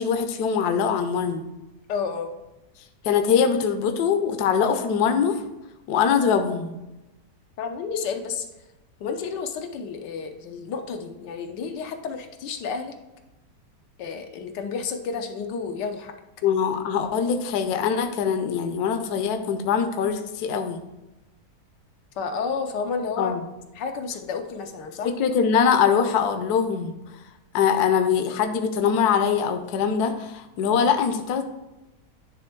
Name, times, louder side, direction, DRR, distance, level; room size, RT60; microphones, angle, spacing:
voice 1, 0.0-1.5 3.0-5.4 5.9-6.7 16.4-20.8 23.2-23.4 25.0-26.9 27.5-31.4, left 7 dB, 70° left, 7 dB, 1.2 m, -22 dB
voice 2, 1.9-2.3 7.6-8.4 9.0-12.9 14.0-16.1 22.2-23.3 23.7-25.1, left 5 dB, 90° left, 5 dB, 1.4 m, -31 dB
9.9 x 3.4 x 4.5 m, 1.0 s
omnidirectional pair, 1.8 m